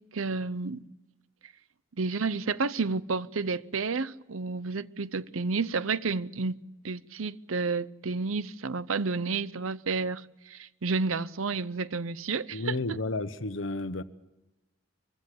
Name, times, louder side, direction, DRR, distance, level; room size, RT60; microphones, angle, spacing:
voice 1, 0.1-0.8 2.0-6.5 6.8-13.0, right 4 dB, 85° right, 0.7 m, -31 dB
voice 2, 12.5-14.0, left 2 dB, 70° left, 1.1 m, -32 dB
23.0 x 15.5 x 8.5 m
head